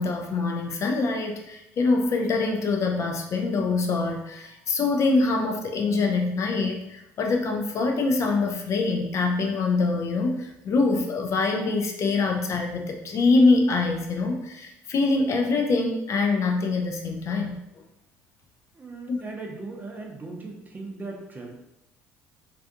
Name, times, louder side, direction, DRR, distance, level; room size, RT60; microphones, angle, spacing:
voice 1, 0.0-17.5 19.1-19.2, left 3 dB, 45° left, 3 dB, 0.4 m, -24 dB
voice 2, 18.7-21.5, right 3 dB, 25° right, 1 dB, 0.6 m, -38 dB
2.5 x 2.4 x 2.5 m, 0.84 s
hypercardioid pair, 55°, 7 cm